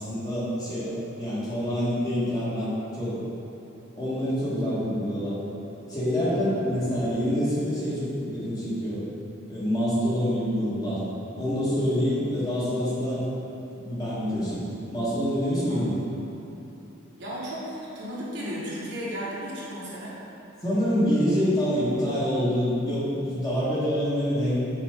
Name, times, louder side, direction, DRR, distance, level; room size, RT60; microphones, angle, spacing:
voice 1, 0.0-3.2 3.9-5.3 5.9-9.0 9.5-11.0 11.3-13.2 13.8-15.9 20.6-24.6, equal, 20° left, -10 dB, 1.4 m, -26 dB
voice 2, 17.2-20.2, equal, 60° right, -7 dB, 1.3 m, -35 dB
5.9 x 4.6 x 3.6 m, 3.0 s
head